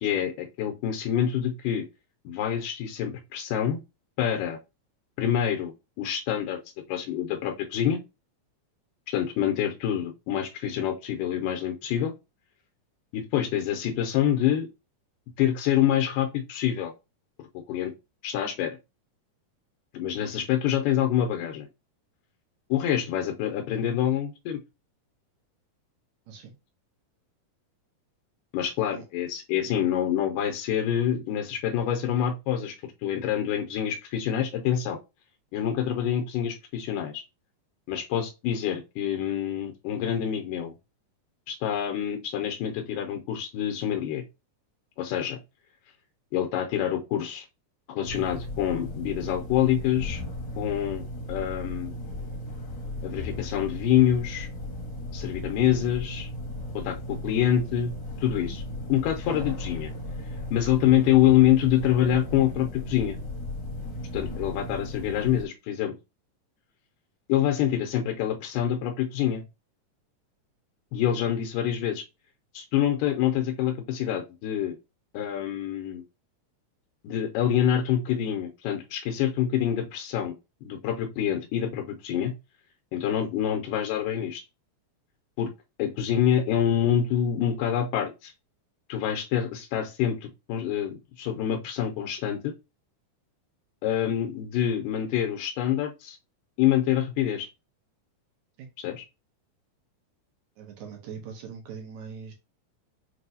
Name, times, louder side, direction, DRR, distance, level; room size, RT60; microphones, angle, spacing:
voice 1, 0.0-1.9 2.3-3.8 4.2-4.6 5.2-5.7 6.0-6.6 6.9-8.0 9.1-12.1 13.1-14.7 15.4-16.9 17.7-17.9 18.2-18.8 19.9-21.7 22.7-24.6 28.5-32.8 33.0-35.0 35.5-37.2 37.9-40.7 41.5-44.2 45.0-45.4 46.3-47.5 47.9-50.2 50.6-51.0 51.3-51.9 53.0-54.5 55.1-56.3 56.8-57.9 58.2-58.6 58.9-59.9 60.5-63.2 64.1-65.9 67.3-69.4 70.9-72.0 72.5-74.8 75.1-76.0 77.0-80.3 80.6-82.3 82.9-84.4 85.4-85.5 85.8-88.3 88.9-92.5 93.8-96.2 96.6-97.5 98.8-99.1, left 10 dB, 85° left, 2.2 m, -26 dB
sound 1, 48.0-65.5, left 1 dB, 60° left, 1.2 m, -36 dB
voice 2, 100.6-102.3, right 6 dB, 70° right, 2.2 m, -41 dB
6.1 x 2.6 x 2.7 m
omnidirectional pair, 3.8 m